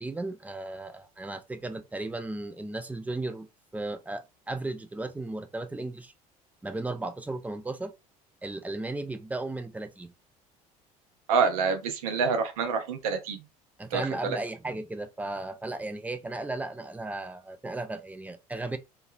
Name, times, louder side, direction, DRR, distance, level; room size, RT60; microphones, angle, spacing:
voice 1, 0.0-6.1 6.6-7.9 8.4-10.1 13.8-18.8, right 2 dB, 10° right, 0.4 m, -35 dB
voice 2, 11.3-13.4 13.9-14.4, right 5 dB, 65° right, 0.7 m, -27 dB
2.8 x 2.3 x 2.4 m
figure-of-eight pair, 60°, 20 cm